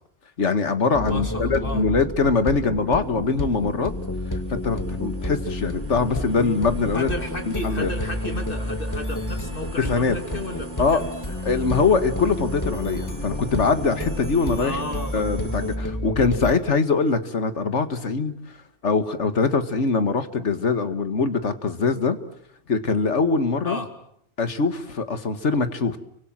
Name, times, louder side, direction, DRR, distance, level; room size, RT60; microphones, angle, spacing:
voice 1, 0.4-3.9 4.5-7.1 7.5-7.9 9.8-10.2 10.8-11.0 11.4-14.8 15.1-18.3 18.8-22.2 22.7-23.8 24.4-26.0, left 4 dB, 80° left, 10 dB, 2.0 m, -23 dB
sound 1, 0.9-16.5, left 1 dB, 15° left, 2.3 m, -30 dB
voice 2, 1.0-1.8 6.9-11.1 14.6-15.3 23.6-23.9, left 1 dB, 50° left, 6 dB, 3.2 m, -33 dB
sound 2, 2.6-15.8, right 3 dB, 45° right, 2.1 m, -45 dB
29.5 x 24.5 x 7.6 m, 0.69 s
omnidirectional pair, 1.2 m